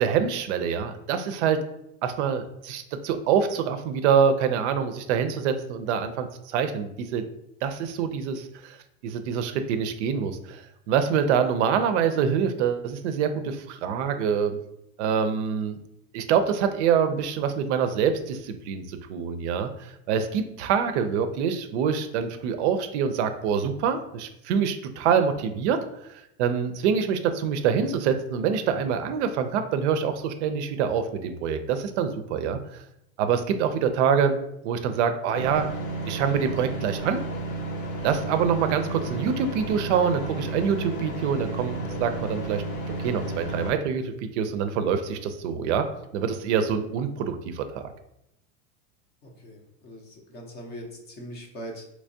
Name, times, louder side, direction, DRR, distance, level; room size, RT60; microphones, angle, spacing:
voice 1, 0.0-1.6 2.0-7.2 7.6-8.8 9.0-14.6 15.0-15.8 16.1-25.8 26.0-32.8 33.2-34.4 34.6-35.7 36.1-37.2 38.0-42.6 43.0-45.9 46.1-47.9, right 7 dB, 60° right, 9 dB, 0.5 m, -25 dB
sound 1, 35.3-43.7, right 2 dB, 80° left, 0.9 m, -32 dB
voice 2, 49.2-51.8, equal, 25° left, 2 dB, 0.5 m, -41 dB
3.4 x 3.0 x 2.6 m, 0.80 s
supercardioid pair, 130°, 40 cm